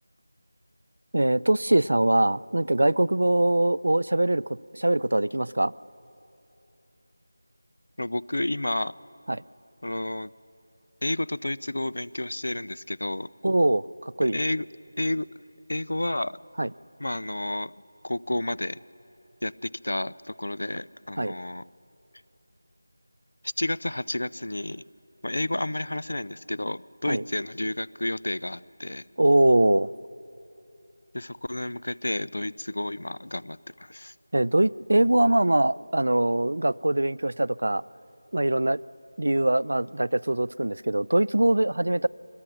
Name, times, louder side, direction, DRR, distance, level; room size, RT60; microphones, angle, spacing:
voice 1, 1.1-4.4 4.7-5.7 9.3-9.4 13.4-14.4 16.6-16.7 21.2-21.3 27.1-27.2 29.2-29.9 34.3-37.8 38.3-38.8 39.2-42.1, right 1 dB, 75° right, 21 dB, 0.4 m, -22 dB
voice 2, 8.0-8.9 9.8-10.3 11.0-13.3 14.2-14.7 15.0-15.3 15.7-16.4 17.0-17.7 18.0-18.8 19.4-21.6 23.4-24.8 25.2-29.0 31.1-34.1, left 1 dB, 80° left, 21 dB, 0.5 m, -30 dB
24.0 x 21.5 x 6.2 m, 2.9 s
figure-of-eight pair, 175°, 0 cm